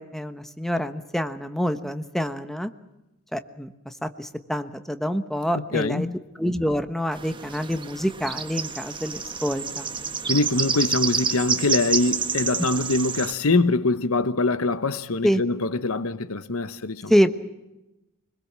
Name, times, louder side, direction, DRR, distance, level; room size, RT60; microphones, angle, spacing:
voice 1, 0.0-2.7 3.3-6.1 6.3-9.9 15.2-15.4 17.1-17.4, equal, ahead, 1.1 m, -26 dB
voice 2, 5.7-6.1 10.3-17.1, left 2 dB, 80° left, 1.1 m, -24 dB
sound 1, 7.1-13.3, right 5 dB, 20° right, 1.3 m, -28 dB
25.5 x 21.0 x 7.5 m
head